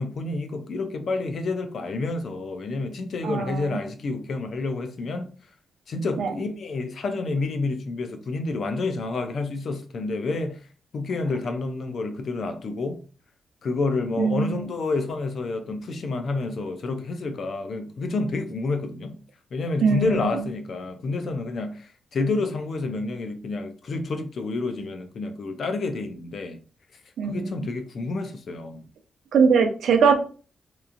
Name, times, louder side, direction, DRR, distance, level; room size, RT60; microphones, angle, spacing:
voice 1, 0.0-5.3 5.9-10.6 10.9-13.0 13.6-19.2 19.5-26.6 27.3-28.9, left 3 dB, 50° left, 0.4 m, -29 dB
voice 2, 3.2-3.8 6.2-6.3 14.2-14.7 19.8-20.4 27.2-27.7 29.3-30.2, right 5 dB, 80° right, 0.5 m, -22 dB
2.9 x 2.5 x 2.4 m
wide cardioid pair, 160°, 0 cm